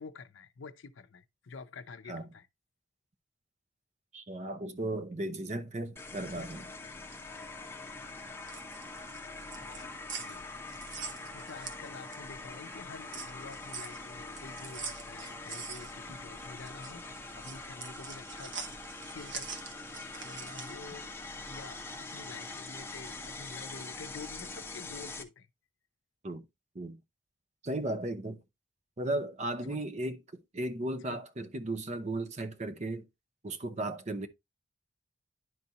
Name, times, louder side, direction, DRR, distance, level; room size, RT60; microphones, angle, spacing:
voice 1, 0.0-2.5 6.4-6.5 9.6-9.9 10.2-10.5 11.3-18.6 19.1-19.5 20.2-21.1 21.5-25.5 29.6-29.8 31.1-31.2, left 4 dB, 80° left, 0.6 m, -48 dB
voice 2, 4.1-6.7 26.2-26.4 26.7-27.0 27.6-28.4 29.0-33.1 33.4-34.3, right 1 dB, 35° right, 0.7 m, -35 dB
sound 1, 6.0-25.2, left 3 dB, 10° left, 0.8 m, -44 dB
sound 2, 8.4-12.4 12.7-20.9, right 5 dB, 80° right, 1.2 m, -44 dB
11.0 x 4.0 x 2.9 m
head